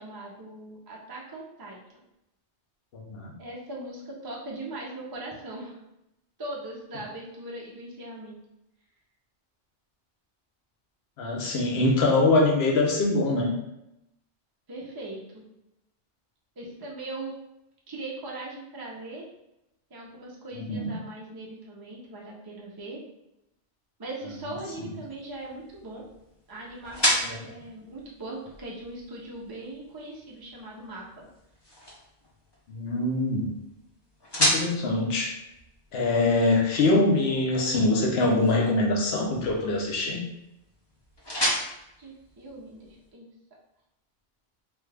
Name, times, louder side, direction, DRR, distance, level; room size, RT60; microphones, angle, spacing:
voice 1, 0.0-1.8 3.4-5.7 6.4-8.4 14.7-15.4 16.6-17.3 17.9-19.3 19.9-23.0 24.0-26.0 26.5-31.3 42.0-43.3, right 2 dB, 30° right, -3 dB, 0.4 m, -40 dB
voice 2, 2.9-3.3 11.2-13.5 20.5-20.9 32.7-33.5 34.4-35.3 35.9-40.2, left 2 dB, 65° left, 0 dB, 0.9 m, -23 dB
sound 1, 24.3-43.1, equal, 30° left, 0.6 m, -35 dB
3.2 x 2.3 x 3.2 m, 0.87 s
omnidirectional pair, 1.2 m